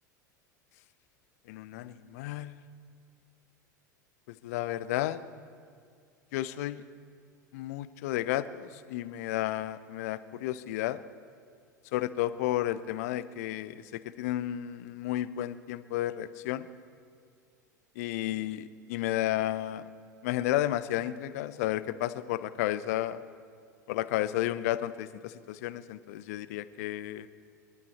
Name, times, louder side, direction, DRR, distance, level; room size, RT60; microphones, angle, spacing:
voice 1, 1.5-2.6 4.4-5.2 6.3-6.8 7.5-11.0 11.9-16.7 18.0-19.9 20.2-23.2 23.9-27.3, left 14 dB, 55° left, 15 dB, 0.6 m, -32 dB
27.0 x 12.0 x 4.3 m, 2.2 s
figure-of-eight pair, 80°, 10 cm